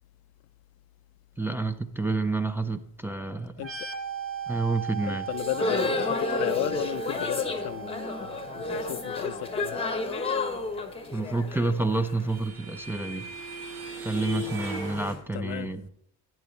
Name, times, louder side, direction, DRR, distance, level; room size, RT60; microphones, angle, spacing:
voice 1, 1.4-3.7 4.5-5.3 11.1-13.2 14.0-15.9, right 3 dB, 5° right, 0.4 m, -29 dB
sound 1, 3.6-11.1, right 8 dB, 35° right, 2.3 m, -39 dB
voice 2, 5.0-9.8 15.3-15.7, left 16 dB, 70° left, 0.5 m, -35 dB
sound 2, 5.3-12.3, left 3 dB, 15° left, 0.9 m, -31 dB
sound 3, 11.3-15.1, equal, 80° right, 4.4 m, -38 dB
12.0 x 8.7 x 3.1 m
cardioid pair, 125°, 38 cm